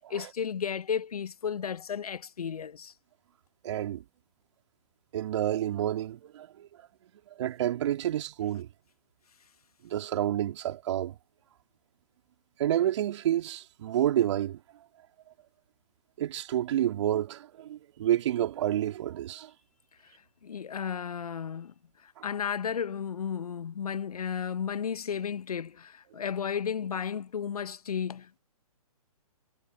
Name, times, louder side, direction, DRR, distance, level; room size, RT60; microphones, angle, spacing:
voice 1, 0.1-2.9 20.0-20.1 20.4-21.7 22.0-28.4, left 7 dB, 75° left, 0.9 m, -33 dB
voice 2, 3.6-4.0 5.1-6.7 7.4-8.7 9.8-11.2 12.6-14.6 16.2-19.5 22.2-22.3 26.2-26.3, right 12 dB, 50° right, 3.3 m, -29 dB
hypercardioid pair, 140°, 19 cm